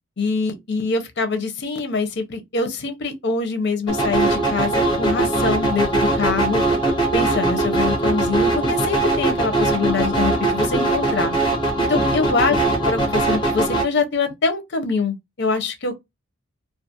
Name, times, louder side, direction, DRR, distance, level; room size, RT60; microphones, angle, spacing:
voice 1, 0.2-6.6 7.1-11.3 11.8-12.6 12.8-16.0, left 4 dB, 60° left, 0.6 m, -24 dB
sound 1, 3.9-13.8, right 2 dB, 25° left, 0.9 m, -20 dB
2.4 x 2.4 x 2.7 m
head